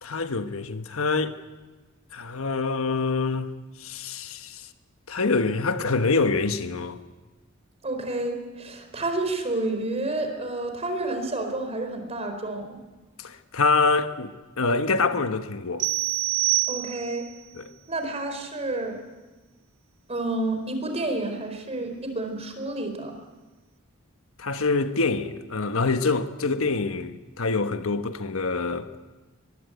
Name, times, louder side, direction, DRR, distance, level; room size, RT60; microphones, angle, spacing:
voice 1, 0.0-1.4 2.1-3.5 3.8-4.7 5.1-7.0 13.2-15.9 17.6-17.7 24.4-28.9, left 4 dB, 75° left, 1.3 m, -25 dB
voice 2, 7.8-12.8 16.7-17.3 17.9-19.0 20.1-23.1, right 2 dB, 30° right, 4.3 m, -30 dB
sound 1, 15.8-17.3, right 19 dB, 60° right, 0.9 m, -26 dB
23.5 x 21.0 x 8.0 m
head